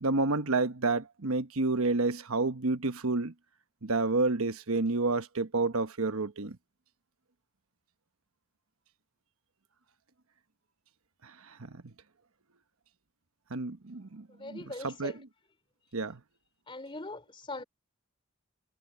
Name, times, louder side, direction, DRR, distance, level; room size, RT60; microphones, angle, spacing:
voice 1, 0.0-3.3 3.8-6.6 11.2-11.9 13.5-15.1 15.9-16.2, right 3 dB, 75° right, 1.2 m, -30 dB
voice 2, 14.3-15.2 16.7-17.6, left 2 dB, 25° left, 3.6 m, -41 dB
head